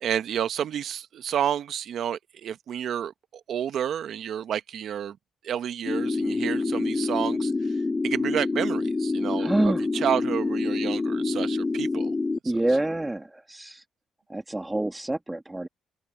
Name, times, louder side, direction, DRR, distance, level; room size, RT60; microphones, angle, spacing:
voice 1, 0.0-3.1 3.5-5.2 5.4-7.7 8.0-12.1, right 9 dB, 65° right, 1.2 m, -30 dB
sound 1, 5.8-12.4, left 3 dB, 25° left, 1.5 m, -27 dB
voice 2, 9.4-9.8 12.4-13.8 14.3-15.7, right 1 dB, 15° right, 1.7 m, -27 dB
open air
cardioid pair, 90°, 0 cm